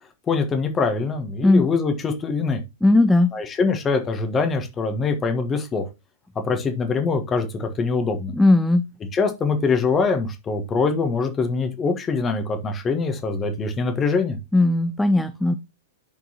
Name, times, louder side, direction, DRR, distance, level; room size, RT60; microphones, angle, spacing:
voice 1, 0.3-2.6 3.3-5.8 6.4-8.3 9.1-14.4, left 4 dB, 20° left, 6 dB, 1.5 m, -23 dB
voice 2, 2.8-3.3 8.3-8.9 14.5-15.5, left 2 dB, 5° left, 10 dB, 0.5 m, -17 dB
12.0 x 4.6 x 2.9 m, 0.25 s
figure-of-eight pair, 105°, 0 cm